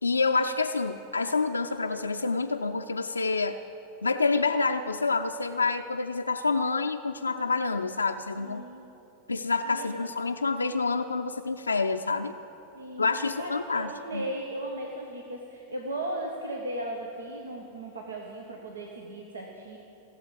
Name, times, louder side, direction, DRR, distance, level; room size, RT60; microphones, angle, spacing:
voice 1, 0.0-3.6 4.0-8.6 9.3-12.3 13.0-14.3, left 4 dB, 85° left, 5 dB, 0.4 m, -27 dB
voice 2, 8.3-8.8 9.6-10.1 12.7-19.8, right 1 dB, 75° right, 0 dB, 1.3 m, -37 dB
16.5 x 8.1 x 8.6 m, 2.9 s
figure-of-eight pair, 90°, 0 cm